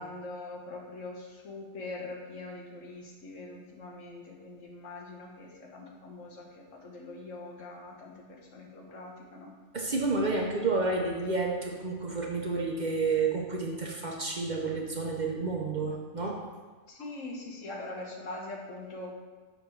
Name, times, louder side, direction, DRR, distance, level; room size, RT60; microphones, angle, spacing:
voice 1, 0.0-9.5 16.9-19.1, left 2 dB, 80° left, -1 dB, 1.5 m, -43 dB
voice 2, 9.7-16.4, right 3 dB, 40° right, -1 dB, 0.8 m, -30 dB
7.3 x 3.5 x 5.8 m, 1.4 s
omnidirectional pair, 1.3 m